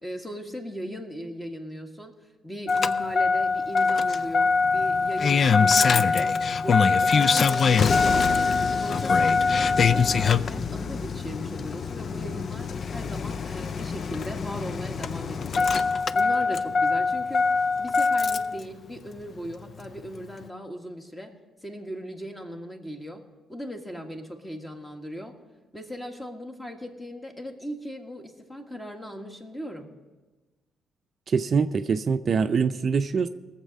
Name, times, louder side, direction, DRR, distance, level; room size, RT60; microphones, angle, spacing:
voice 1, 0.0-2.1 2.4-6.4 6.6-15.7 16.1-17.5 17.8-21.3 21.6-23.2 23.5-25.3 25.7-29.9, equal, 15° left, 3 dB, 1.7 m, -38 dB
Engine starting, 2.7-18.6 19.9-20.0, left 5 dB, 50° left, 0.4 m, -23 dB
voice 2, 31.3-33.3, right 5 dB, 45° right, 9 dB, 0.5 m, -24 dB
18.5 x 7.4 x 5.3 m, 1.3 s
cardioid pair, 90°, 0 cm